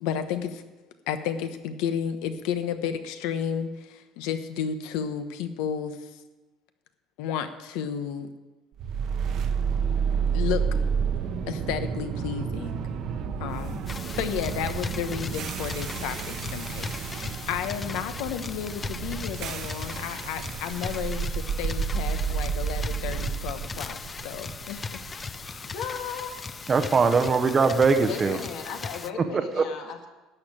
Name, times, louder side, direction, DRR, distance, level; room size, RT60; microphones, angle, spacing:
voice 1, 0.0-0.6 1.1-6.1 7.2-8.3 10.3-10.6 11.5-12.8 13.4-24.0 24.2-25.0 28.0-28.1, left 8 dB, 85° left, 9 dB, 1.1 m, -32 dB
sound 1, 8.8-26.9, right 6 dB, 45° right, 0.9 m, -31 dB
sound 2, 13.9-29.1, left 4 dB, 20° left, 0.4 m, -38 dB
voice 2, 25.6-26.3 28.0-30.1, left 7 dB, 65° left, 3 dB, 2.0 m, -36 dB
voice 3, 26.7-28.4 29.3-29.6, right 4 dB, 20° right, 9 dB, 0.7 m, -21 dB
12.0 x 6.7 x 8.7 m, 1.1 s
cardioid pair, 160°, 0 cm